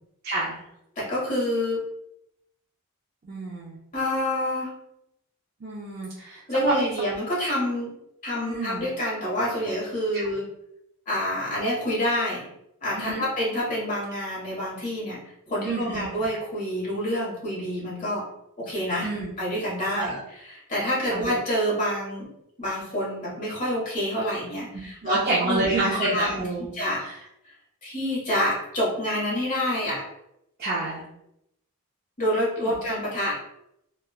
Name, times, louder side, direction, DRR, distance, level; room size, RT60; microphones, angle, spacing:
voice 1, 0.2-0.6 3.2-3.8 5.6-6.8 8.5-8.8 10.1-10.3 12.9-13.2 15.6-16.1 19.0-19.3 19.9-20.2 21.1-21.3 24.7-26.7 27.0-27.2 29.9-30.0 30.6-31.0 32.7-32.8, right 2 dB, 45° right, -6 dB, 0.5 m, -28 dB
voice 2, 1.0-1.8 3.9-4.7 6.5-7.9 8.2-10.5 11.1-12.5 12.8-15.2 15.5-18.2 18.6-19.1 19.4-20.2 20.5-22.3 22.6-25.2 25.5-26.4 26.7-27.0 27.8-30.0 32.2-33.3, equal, 35° left, -7 dB, 1.3 m, -27 dB
3.0 x 2.3 x 2.3 m, 0.81 s
head